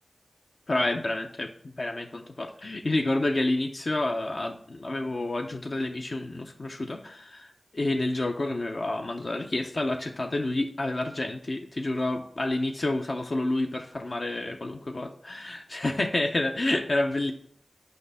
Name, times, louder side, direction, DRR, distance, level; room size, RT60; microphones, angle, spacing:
voice 1, 0.7-17.3, left 2 dB, 60° left, 3 dB, 0.5 m, -29 dB
6.4 x 5.1 x 3.4 m, 0.63 s
wide cardioid pair, 50°, 0 cm